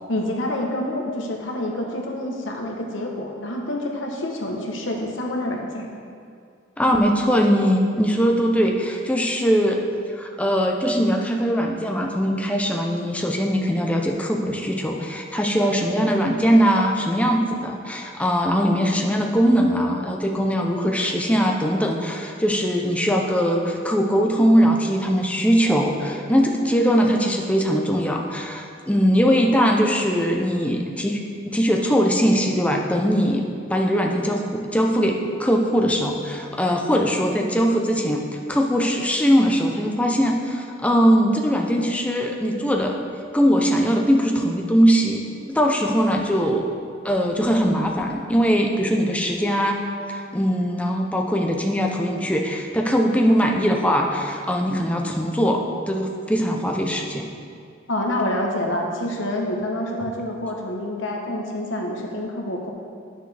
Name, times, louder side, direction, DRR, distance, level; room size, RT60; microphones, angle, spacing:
voice 1, 0.1-5.9 57.9-62.7, left 1 dB, 75° left, 1 dB, 1.1 m, -27 dB
voice 2, 6.8-9.8 10.2-31.2 31.5-33.4 33.7-43.0 43.3-45.2 45.5-46.6 47.0-49.8 50.1-55.6 55.9-57.3, equal, 5° left, 1 dB, 0.6 m, -21 dB
9.9 x 6.4 x 3.4 m, 2.3 s
head